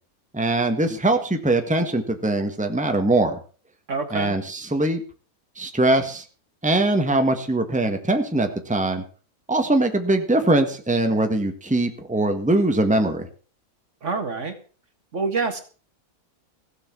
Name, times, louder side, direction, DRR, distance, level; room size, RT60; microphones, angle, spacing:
voice 1, 0.3-3.4 4.1-5.0 5.6-6.2 6.6-9.0 9.5-13.3, right 2 dB, 5° right, 6 dB, 1.6 m, -22 dB
voice 2, 3.9-4.4 14.0-14.6 15.1-15.6, right 4 dB, 55° right, 8 dB, 1.9 m, -26 dB
16.0 x 7.5 x 7.1 m, 0.40 s
omnidirectional pair, 1.6 m